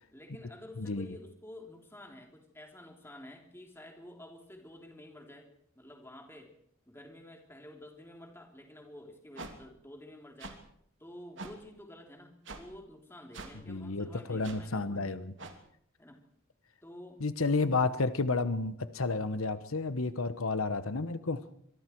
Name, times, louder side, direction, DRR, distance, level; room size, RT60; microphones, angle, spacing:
voice 1, 0.0-5.5 5.7-6.5 6.9-10.6 11.0-15.0 16.0-16.2 16.8-17.2, left 1 dB, 10° left, 2 dB, 3.5 m, -50 dB
sound 1, 9.3-9.5 10.4-10.5 11.4-11.5 12.4-12.6 13.3-13.5 14.4-14.6 15.4-15.5, right 3 dB, 60° right, 2.9 m, -43 dB
voice 2, 13.7-15.3 17.2-21.4, left 3 dB, 85° left, 12 dB, 1.1 m, -31 dB
25.5 x 22.5 x 4.7 m, 0.66 s
head